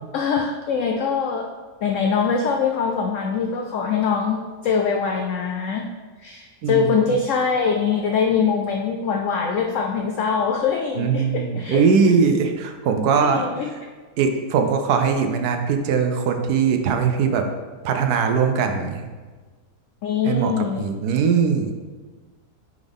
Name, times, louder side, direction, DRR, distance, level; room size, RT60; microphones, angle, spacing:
voice 1, 0.1-1.5 1.8-5.9 6.2-11.8 13.1-13.7 20.0-20.9, left 6 dB, 70° left, 3 dB, 0.8 m, -23 dB
voice 2, 6.6-7.0 11.0-13.5 14.2-17.5 17.8-19.1 20.2-21.7, right 6 dB, 80° right, 5 dB, 1.2 m, -20 dB
9.3 x 3.9 x 3.5 m, 1.4 s
omnidirectional pair, 1.6 m